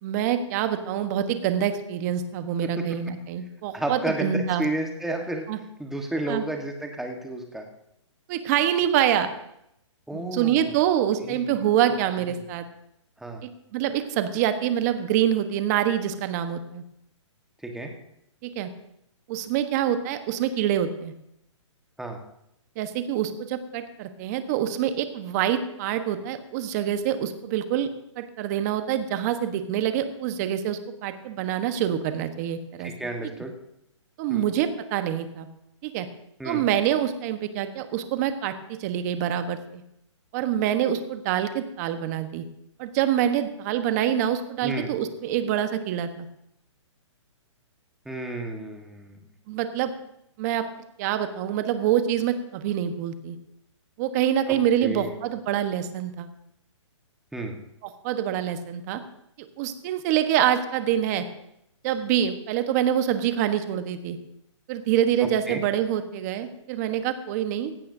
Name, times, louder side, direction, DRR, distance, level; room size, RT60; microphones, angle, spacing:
voice 1, 0.0-4.6 5.5-5.6 6.3-6.4 8.3-9.3 10.1-12.6 13.7-16.8 18.4-18.7 19.3-21.1 22.8-27.9 28.2-32.9 34.2-35.5 35.8-36.1 36.4-39.8 40.3-42.4 42.8-46.3 49.5-49.9 50.4-50.7 51.0-53.4 54.0-56.3 58.0-59.0 59.6-61.3 61.8-64.2 64.7-67.7, right 10 dB, 35° right, 9 dB, 1.2 m, -26 dB
voice 2, 3.7-5.5 5.8-7.7 10.1-10.7 11.2-11.5 12.2-12.3 13.2-13.4 17.6-17.9 22.0-22.2 32.8-33.5 34.3-34.4 36.4-36.7 44.6-44.9 48.0-49.2 54.8-55.1 57.3-57.5 65.2-65.6, right 1 dB, ahead, 2 dB, 1.4 m, -32 dB
17.5 x 16.0 x 2.7 m, 0.79 s
hypercardioid pair, 150°, 16 cm